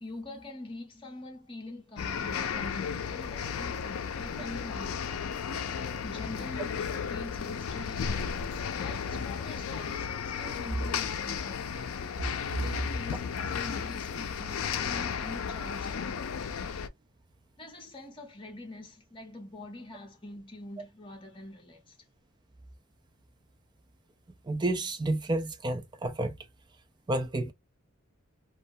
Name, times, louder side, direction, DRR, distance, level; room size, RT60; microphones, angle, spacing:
voice 1, 0.0-5.3 6.0-8.3 8.8-11.9 12.6-16.5 17.6-22.0, left 2 dB, 25° left, 0.8 m, -45 dB
sound 1, 2.0-16.9, left 6 dB, 85° left, 0.4 m, -34 dB
voice 2, 24.4-26.4 27.1-27.5, right 2 dB, 20° right, 0.3 m, -30 dB
2.3 x 2.2 x 2.6 m
head